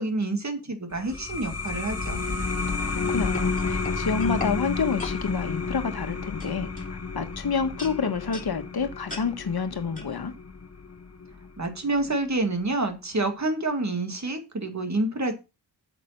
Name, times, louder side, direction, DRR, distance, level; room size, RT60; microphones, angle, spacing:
voice 1, 0.0-2.3 11.6-15.3, right 2 dB, 45° right, 2.2 m, -28 dB
sound 1, 0.9-12.1, left 4 dB, 40° left, 1.4 m, -31 dB
voice 2, 2.9-10.3, left 5 dB, 65° left, 1.4 m, -29 dB
sound 2, 2.9-4.6 5.0-5.2 5.9-6.1 6.4-7.4 7.8-8.5 9.1-9.3 10.0-10.1, left 3 dB, 20° left, 3.2 m, -38 dB
8.5 x 6.8 x 5.8 m
wide cardioid pair, 75°, 40 cm